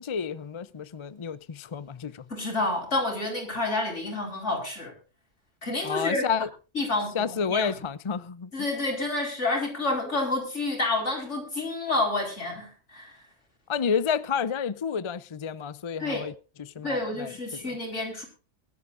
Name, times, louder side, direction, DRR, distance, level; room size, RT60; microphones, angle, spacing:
voice 1, 0.0-2.5 5.8-6.5 7.1-8.5 13.7-16.3 16.6-17.7, left 6 dB, 40° left, 0.4 m, -30 dB
voice 2, 2.3-4.9 5.6-6.3 6.7-7.7 8.5-13.2 16.0-16.2 16.8-18.3, left 2 dB, 70° left, 5.0 m, -29 dB
21.5 x 12.0 x 2.5 m
omnidirectional pair, 1.2 m